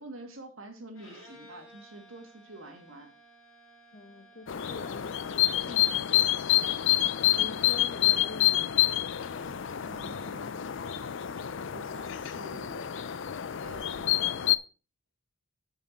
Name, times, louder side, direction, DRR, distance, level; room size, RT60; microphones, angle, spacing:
voice 1, 0.0-3.1 5.6-7.1 9.8-10.7 11.7-12.9 13.6-14.4, right 2 dB, 75° right, 2.2 m, -47 dB
Bowed string instrument, 0.9-5.4, equal, 80° left, 4.2 m, -55 dB
voice 2, 3.9-5.4 7.4-8.7, left 2 dB, 45° left, 0.9 m, -44 dB
sound 1, 4.5-14.6, left 13 dB, 60° left, 0.4 m, -28 dB
7.7 x 6.9 x 4.6 m
head